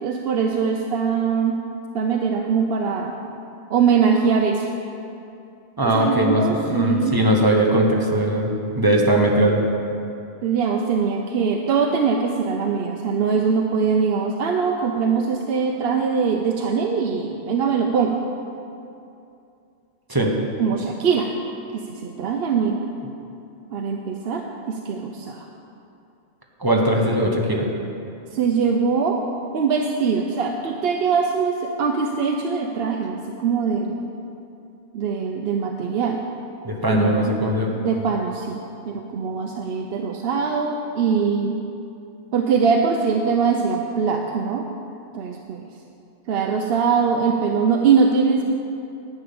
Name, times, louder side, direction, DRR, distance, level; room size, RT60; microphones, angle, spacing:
voice 1, 0.0-1.5 1.9-3.1 3.7-4.7 5.8-7.1 10.4-18.2 20.6-21.3 21.7-22.9 23.7-25.5 28.3-29.2 29.5-34.0 34.9-36.2 36.9-37.3 37.8-38.6 38.9-41.6 42.3-44.7 45.1-45.7 46.3-48.4, right 5 dB, 60° right, 2 dB, 0.8 m, -22 dB
voice 2, 5.8-9.6 20.1-20.3 26.6-27.7 36.6-37.7, right 1 dB, 20° right, 0 dB, 1.1 m, -20 dB
11.0 x 5.5 x 8.5 m, 2.7 s
omnidirectional pair, 1.2 m